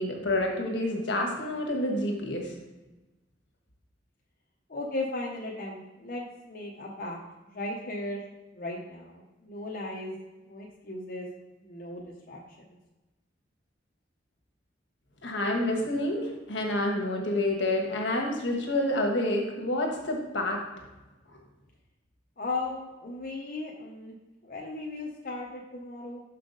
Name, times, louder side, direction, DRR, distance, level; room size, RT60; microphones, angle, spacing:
voice 1, 0.0-2.5 15.2-20.6, left 1 dB, 75° left, 1 dB, 1.3 m, -28 dB
voice 2, 4.7-7.2 7.4-8.2 8.5-10.2 10.5-11.3 11.6-12.8 22.4-24.1 24.4-26.2, left 2 dB, 50° left, -2 dB, 0.8 m, -36 dB
6.1 x 5.7 x 3.9 m, 1.1 s
head